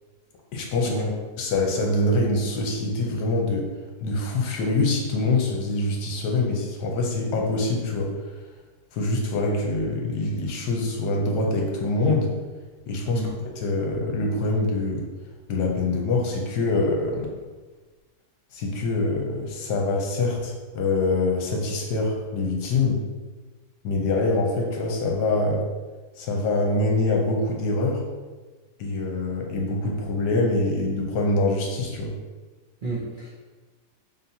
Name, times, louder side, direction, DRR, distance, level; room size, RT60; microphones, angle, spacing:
voice 1, 0.5-0.9 1.4-3.7 4.0-8.2 8.9-12.3 12.9-13.3 13.6-15.0 15.5-17.3 18.5-23.0 23.8-25.6 26.2-28.0 28.8-32.1, left 2 dB, 75° left, 0 dB, 1.3 m, -24 dB
voice 2, 32.8-33.3, right 2 dB, 85° right, -7 dB, 0.4 m, -30 dB
4.2 x 3.5 x 2.7 m, 1.3 s
omnidirectional pair, 1.8 m